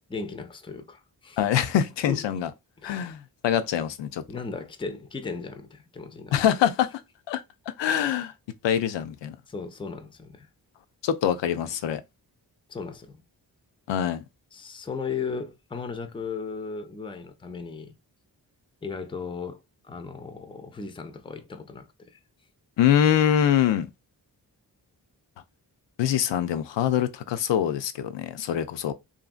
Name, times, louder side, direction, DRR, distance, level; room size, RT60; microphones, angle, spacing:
voice 1, 0.1-1.5 2.1-2.2 2.8-3.0 4.3-6.4 9.5-10.5 12.7-13.2 14.5-17.9 18.8-22.2, left 5 dB, 10° left, 0.4 m, -36 dB
voice 2, 1.4-2.5 2.8-4.2 6.3-7.0 7.3-8.3 8.6-9.4 11.0-12.0 13.9-14.2 22.8-23.9 26.0-28.9, left 10 dB, 80° left, 0.5 m, -24 dB
2.8 x 2.6 x 2.4 m
cardioid pair, 40°, 43 cm